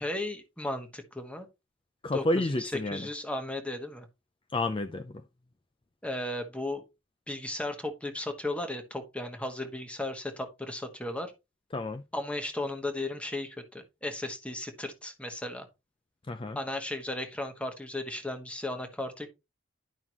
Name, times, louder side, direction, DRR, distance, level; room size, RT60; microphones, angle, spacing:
voice 1, 0.0-1.5 2.1-4.1 6.0-6.8 7.3-11.3 12.1-15.7 16.5-19.3, left 1 dB, 5° left, 1.2 m, -35 dB
voice 2, 2.0-3.1 4.5-5.2 11.7-12.0 16.3-16.6, left 2 dB, 25° left, 0.4 m, -30 dB
11.0 x 5.6 x 3.0 m
head